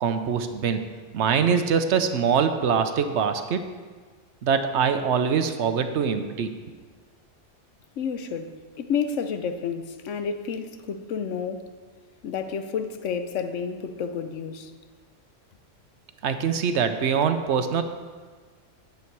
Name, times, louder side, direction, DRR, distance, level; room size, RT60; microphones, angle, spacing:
voice 1, 0.0-0.8 1.1-3.6 4.4-6.5 16.2-17.8, right 6 dB, 70° right, 1.0 m, -23 dB
voice 2, 8.0-11.7 12.2-14.7, left 6 dB, 85° left, 1.1 m, -30 dB
9.9 x 7.9 x 4.6 m
omnidirectional pair, 1.3 m